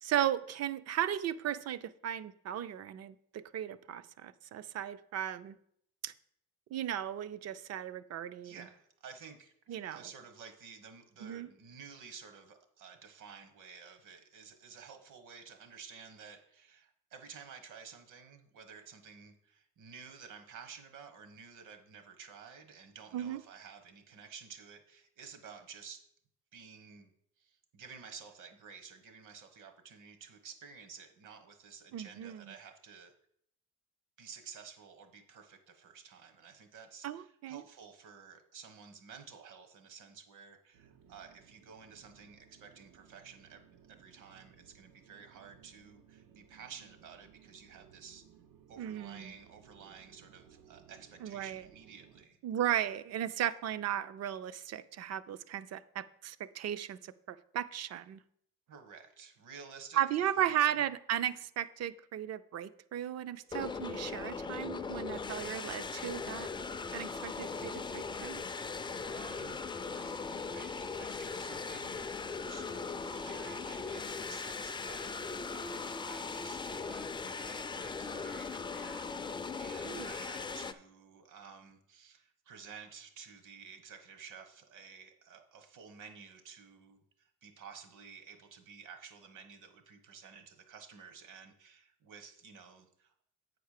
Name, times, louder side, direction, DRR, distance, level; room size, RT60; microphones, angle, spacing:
voice 1, 0.0-5.6 6.0-6.1 6.7-8.7 9.7-10.0 11.2-11.5 23.1-23.4 31.9-32.5 37.0-37.6 48.8-49.3 51.2-51.7 52.4-58.2 59.9-66.5 66.9-68.4 79.8-80.1, right 11 dB, 50° right, 15 dB, 0.5 m, -36 dB
voice 2, 8.4-26.0 26.5-33.1 34.2-43.6 43.9-48.2 48.7-52.4 58.7-60.7 69.0-93.1, right 6 dB, 65° right, 8 dB, 1.3 m, -52 dB
sound 1, 40.7-52.3, right 8 dB, 85° right, 0.9 m, -61 dB
sound 2, 63.5-80.7, left 4 dB, 15° left, 0.3 m, -39 dB
8.1 x 4.6 x 6.5 m, 0.70 s
cardioid pair, 130°, 33 cm